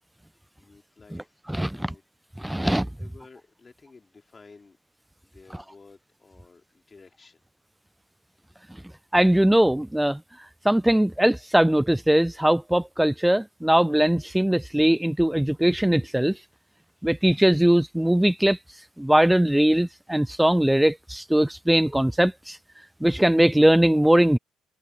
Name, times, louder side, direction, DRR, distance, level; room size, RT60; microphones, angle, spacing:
voice 1, 0.6-2.0 3.0-4.8 5.2-7.4, left 4 dB, 25° left, 4.2 m, -52 dB
voice 2, 2.4-2.9 9.1-10.2 10.6-16.4 17.0-18.6 19.0-22.6 23.0-24.4, right 1 dB, 5° right, 0.4 m, -20 dB
supercardioid pair, 70°, 0 cm